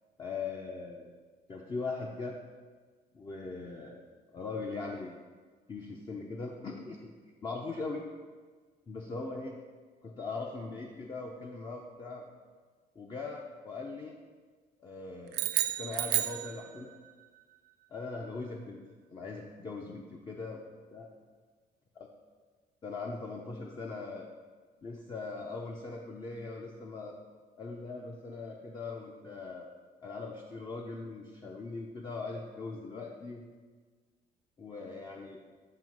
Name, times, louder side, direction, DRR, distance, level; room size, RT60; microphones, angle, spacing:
voice 1, 0.2-1.1 1.5-2.4 3.1-5.2 5.7-7.1 7.4-8.0 8.9-9.6 10.0-12.3 13.0-14.2 14.8-16.9 17.9-18.8 19.1-20.6 20.9-21.1 22.8-24.3 24.8-27.2 27.6-29.7 30.0-33.5 34.6-35.4, left 3 dB, 25° left, 0 dB, 0.5 m, -40 dB
sound 1, 15.3-17.1, right 13 dB, 80° right, 0.4 m, -31 dB
7.5 x 2.8 x 5.3 m, 1.5 s
cardioid pair, 110°, 17 cm